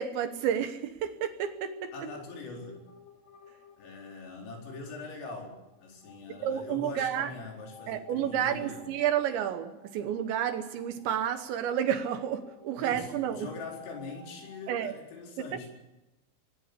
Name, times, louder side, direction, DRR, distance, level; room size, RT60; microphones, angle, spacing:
voice 1, 0.0-2.1 6.4-7.3 7.9-13.5 14.7-14.9 15.4-15.7, right 9 dB, 75° right, 3.0 m, -31 dB
sound 1, 1.4-14.7, left 6 dB, 45° left, 2.5 m, -55 dB
voice 2, 1.9-2.9 3.8-8.9 12.8-15.7, left 3 dB, 75° left, 7.1 m, -42 dB
22.5 x 19.0 x 8.2 m
omnidirectional pair, 5.9 m